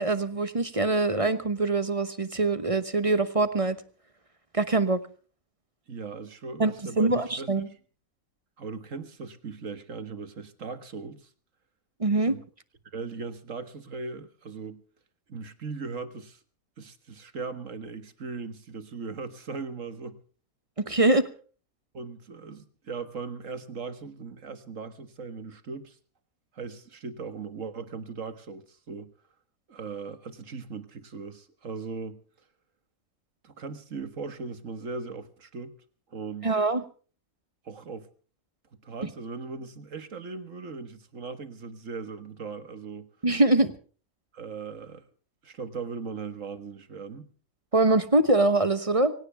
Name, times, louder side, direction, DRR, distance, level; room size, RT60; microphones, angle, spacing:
voice 1, 0.0-3.8 4.5-5.0 6.6-7.6 12.0-12.4 20.8-21.3 36.4-36.8 43.2-43.7 47.7-49.1, right 2 dB, 25° right, 1.0 m, -23 dB
voice 2, 5.9-7.8 8.6-11.3 12.3-12.4 12.9-14.8 15.3-16.4 16.8-20.2 21.9-26.0 26.5-29.1 29.7-32.2 33.4-35.7 36.1-36.5 37.6-38.1 38.8-43.1 44.3-45.0 45.4-47.3, right 4 dB, 60° right, 1.9 m, -38 dB
23.5 x 17.5 x 3.4 m
omnidirectional pair, 1.5 m